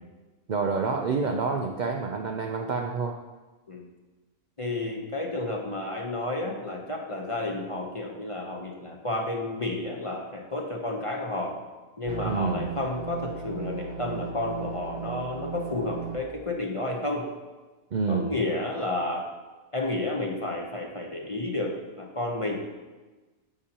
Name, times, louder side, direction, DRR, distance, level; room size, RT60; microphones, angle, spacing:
voice 1, 0.5-3.1 12.2-12.7 17.9-18.3, right 4 dB, 80° right, 2 dB, 0.4 m, -28 dB
voice 2, 4.6-11.6 12.0-17.3 18.0-19.3 19.7-22.6, left 2 dB, 30° left, 0 dB, 0.7 m, -31 dB
sound 1, 12.1-16.2, right 6 dB, 50° right, 1.0 m, -36 dB
9.7 x 7.1 x 2.9 m, 1.2 s
omnidirectional pair, 1.5 m